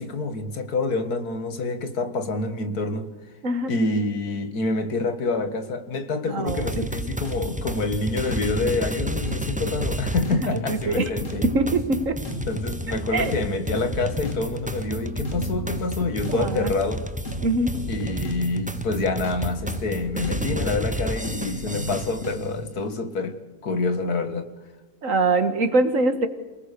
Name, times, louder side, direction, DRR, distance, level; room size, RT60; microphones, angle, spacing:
voice 1, 0.0-3.1 3.7-11.4 12.5-17.1 17.9-24.5, left 3 dB, 75° left, 2.3 m, -27 dB
voice 2, 6.3-6.9 10.3-11.1 11.5-12.2 13.1-13.3 16.3-16.7 17.4-17.7 25.0-26.3, right 2 dB, 55° right, 1.9 m, -23 dB
sound 1, 6.5-22.4, equal, 5° right, 0.7 m, -32 dB
sound 2, 6.7-22.7, equal, 55° left, 3.2 m, -35 dB
28.5 x 19.5 x 6.8 m
omnidirectional pair, 1.6 m